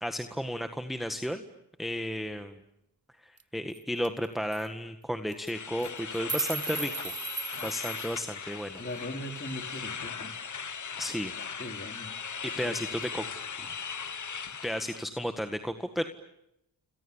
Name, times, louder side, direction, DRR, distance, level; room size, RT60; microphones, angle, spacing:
voice 1, 0.0-1.4 1.8-2.6 3.2-7.1 7.6-8.8 11.0-11.3 12.4-13.4 14.2-14.3 14.6-16.0, equal, ahead, 7 dB, 1.7 m, -33 dB
sound 1, 3.4-3.5 3.7-3.8 4.0-4.3 4.5-4.7 5.3-5.5 5.8-8.1, right 5 dB, 30° right, 1.2 m, -36 dB
sound 2, 5.5-15.0, left 6 dB, 40° left, 1.0 m, -39 dB
voice 2, 8.8-10.3 11.6-12.1 12.6-12.7 13.0-13.2 13.6-13.7, left 1 dB, 25° left, 4 dB, 4.2 m, -40 dB
29.5 x 27.5 x 7.2 m, 0.85 s
cardioid pair, 50°, 46 cm